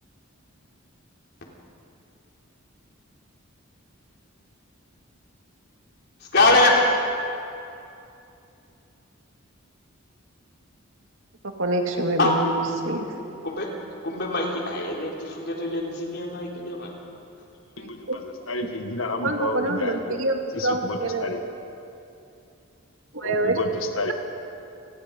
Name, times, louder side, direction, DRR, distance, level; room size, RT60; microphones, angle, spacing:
voice 1, 6.2-6.8 12.2-12.4 13.4-13.7 14.0-16.9, left 2 dB, 55° left, -1 dB, 3.8 m, -23 dB
voice 2, 11.4-12.5 12.8-13.1 17.8-18.2 19.2-21.3 23.1-23.6, right 2 dB, 75° right, 3 dB, 2.4 m, -26 dB
voice 3, 17.8-20.2 20.5-21.4 23.2-24.1, left 1 dB, 75° left, 5 dB, 1.8 m, -30 dB
28.5 x 19.5 x 5.4 m, 2.7 s
head